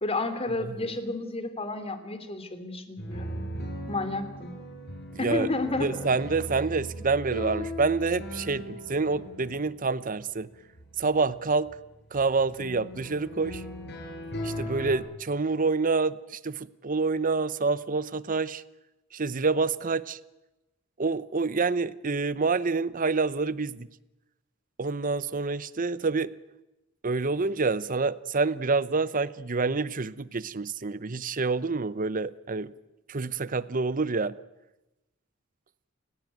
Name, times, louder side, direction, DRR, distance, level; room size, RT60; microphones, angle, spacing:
voice 1, 0.0-3.4 3.9-4.5 5.2-5.9, left 2 dB, 30° left, 10 dB, 2.9 m, -31 dB
sound 1, 3.0-15.0, equal, 60° left, 5.9 m, -39 dB
voice 2, 5.1-5.5 5.8-10.5 11.0-11.7 12.1-13.6 14.4-18.6 19.1-20.2 21.0-23.9 24.8-26.3 27.0-32.7 33.1-34.3, right 4 dB, 45° right, 17 dB, 0.8 m, -27 dB
30.0 x 17.0 x 9.3 m, 1.0 s
head